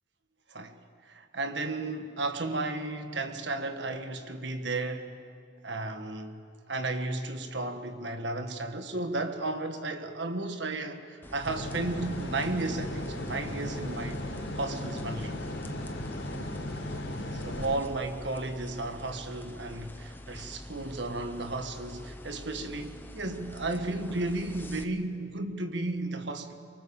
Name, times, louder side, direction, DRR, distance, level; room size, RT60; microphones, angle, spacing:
voice 1, 1.0-5.1 5.6-6.4 6.7-14.2 14.6-15.4 17.3-26.5, right 2 dB, 70° right, 1.6 m, -34 dB
sound 1, 11.2-24.8, left 1 dB, 10° left, 0.9 m, -46 dB
sound 2, 11.5-17.8, left 1 dB, 80° left, 3.9 m, -36 dB
24.0 x 24.0 x 7.1 m
head